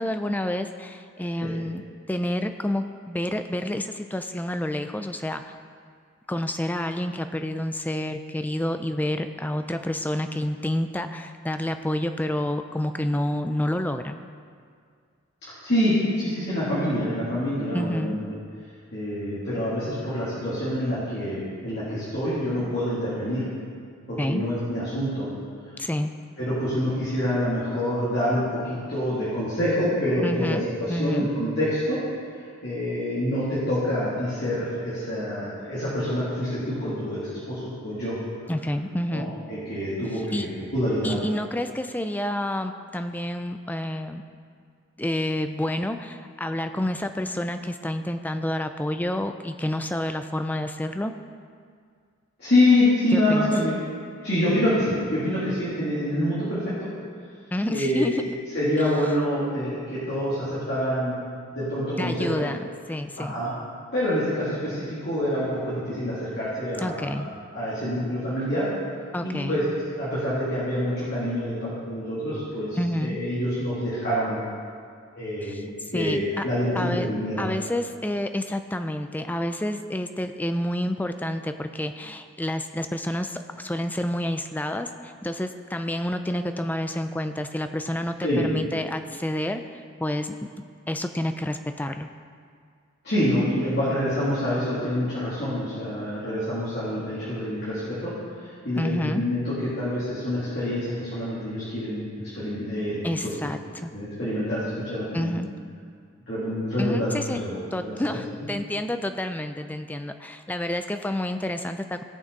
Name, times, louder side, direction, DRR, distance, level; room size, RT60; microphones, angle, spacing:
voice 1, 0.0-1.8 2.1-5.5 6.3-14.2 17.7-18.2 24.2-24.4 25.8-26.1 30.2-31.3 38.5-39.3 40.3-40.5 41.0-44.2 45.0-51.1 53.1-53.5 57.5-58.4 62.0-63.4 66.8-67.3 69.1-69.6 72.8-73.2 75.4-76.4 76.7-77.1 77.4-90.4 90.9-92.1 98.8-99.2 103.0-103.9 105.1-105.5 106.8-107.4 107.7-112.0, left 1 dB, 10° left, 8 dB, 0.4 m, -29 dB
voice 2, 15.5-18.2 18.9-23.4 24.1-25.3 26.4-32.0 32.6-38.1 39.1-41.1 52.4-53.7 54.2-56.9 57.7-58.1 58.5-61.1 61.5-62.4 63.2-63.5 63.9-67.3 67.5-68.7 69.2-69.6 69.9-74.4 75.2-77.5 88.2-88.5 93.0-98.1 98.4-102.0 102.3-103.3 103.9-105.3 106.3-108.2, left 1 dB, 50° left, -11 dB, 2.8 m, -26 dB
18.0 x 6.3 x 4.1 m, 2.1 s
head